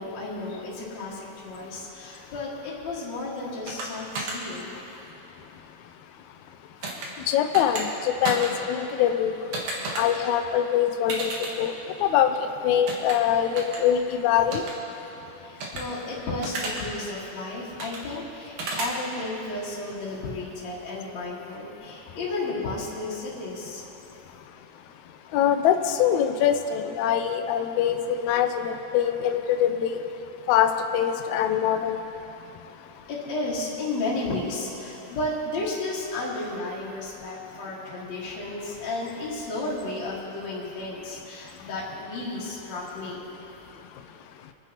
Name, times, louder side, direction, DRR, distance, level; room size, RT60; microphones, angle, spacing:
voice 1, 0.0-4.7 15.4-23.8 33.1-43.3, left 2 dB, 60° left, -7 dB, 3.0 m, -33 dB
sound 1, 3.7-3.9 4.2-4.4 6.8-7.1 7.5-7.8 8.2-8.5 9.5-10.0 11.1-11.5 12.9-13.2 13.6-13.8 14.5-14.7 15.6-15.8 16.4-16.8 17.8-18.0 18.6-18.9, right 3 dB, 75° right, 3.0 m, -31 dB
voice 2, 7.3-9.3 10.0-11.3 11.6-11.7 12.0-12.3 12.6-14.6 25.3-28.0 28.2-30.0 30.5-32.0, left 10 dB, 75° left, 6 dB, 1.9 m, -23 dB
27.0 x 9.8 x 3.0 m, 3.0 s
omnidirectional pair, 3.7 m